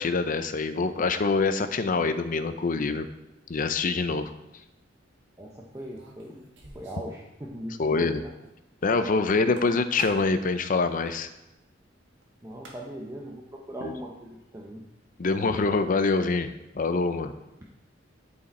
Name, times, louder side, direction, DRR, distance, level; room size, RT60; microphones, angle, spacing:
voice 1, 0.0-3.1 3.5-4.3 7.8-8.2 8.8-11.3 13.8-13.9 15.2-17.3, left 3 dB, 45° left, 10 dB, 0.5 m, -25 dB
voice 2, 5.4-6.4 6.7-8.3 12.4-14.8, equal, 15° right, -2 dB, 0.8 m, -39 dB
sound 1, 5.7-7.1 7.4-7.5 7.8-7.9 9.3-10.5 12.2-12.3 12.5-13.1, right 2 dB, 75° right, 1.7 m, -47 dB
11.5 x 4.9 x 4.2 m, 0.92 s
head